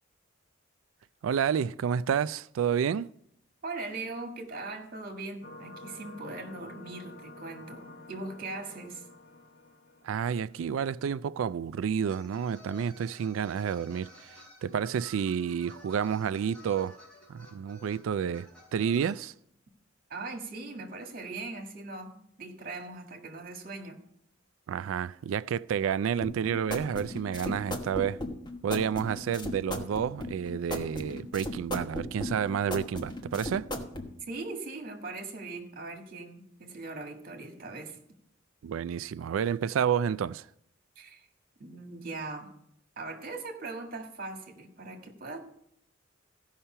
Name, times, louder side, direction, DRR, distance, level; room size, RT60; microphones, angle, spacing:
voice 1, 1.2-3.1 10.0-14.3 14.6-17.0 17.3-19.3 24.7-28.2 28.6-33.7 38.6-40.5, right 7 dB, 85° right, 0.3 m, -30 dB
voice 2, 3.6-9.0 20.1-24.0 27.5-27.7 34.3-38.0 41.0-41.3 41.6-42.5 43.0-45.4, right 3 dB, 50° right, 1.8 m, -40 dB
sound 1, 5.4-10.7, left 2 dB, 55° left, 1.2 m, -49 dB
sound 2, 12.1-19.1, left 1 dB, 5° left, 4.4 m, -53 dB
sound 3, 26.2-34.1, left 1 dB, 20° left, 1.2 m, -36 dB
15.5 x 5.7 x 5.6 m
head